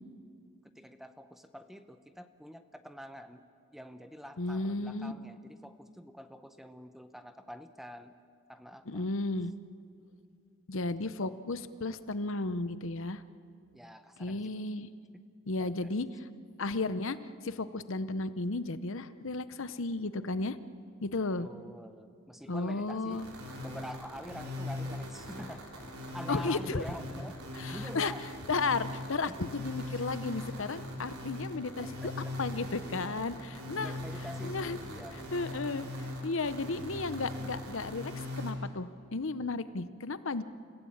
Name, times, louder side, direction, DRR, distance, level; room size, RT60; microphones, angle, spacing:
voice 1, 0.7-3.5 3.7-8.1 8.5-9.0 11.2-11.4 13.7-14.7 15.1-15.2 15.6-15.9 21.4-23.3 23.6-25.7 26.1-28.3 29.2-29.4 33.8-35.4, equal, ahead, 9 dB, 0.8 m, -46 dB
voice 2, 4.4-5.1 8.9-9.5 10.7-13.2 14.2-14.9 15.5-16.3 16.6-17.2 17.4-20.6 21.0-21.5 22.5-23.3 26.3-26.8 27.6-28.1 28.5-32.1 32.4-34.0 34.4-34.8 35.3-40.4, left 3 dB, 60° left, 14 dB, 0.8 m, -34 dB
sound 1, 23.1-38.5, left 1 dB, 75° right, 3.7 m, -40 dB
29.0 x 16.0 x 8.7 m, 2.3 s
head